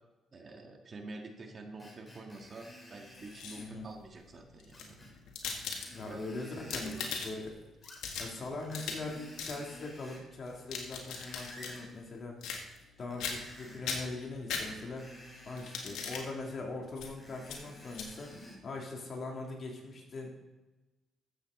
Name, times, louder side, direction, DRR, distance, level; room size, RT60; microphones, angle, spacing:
voice 1, 0.3-5.1 6.0-7.3, right 2 dB, 40° right, 3 dB, 1.7 m, -48 dB
Screech, 1.8-3.7 4.7-5.1 5.4-7.1 7.8-8.3 8.6-10.3 10.8-11.9 13.0-14.0 14.6-16.0 17.0-18.6 19.2-19.3, equal, 15° left, 4.5 m, -52 dB
sound 1, 3.1-3.8 4.6-6.2 6.6-7.5 7.8-9.1 9.4-9.6 10.5-11.8 12.4-12.9 13.2-13.6 13.8-15.1 15.6-16.3 17.0-17.1 17.4-17.6 17.9-18.1, left 5 dB, 85° left, 1.9 m, -39 dB
voice 2, 3.6-3.9 5.9-6.9 7.2-7.5 8.2-12.4 13.0-15.0 15.4-20.3, left 3 dB, 45° left, -1 dB, 3.1 m, -41 dB
14.0 x 8.0 x 4.2 m, 1.1 s
cardioid pair, 90°, 0 cm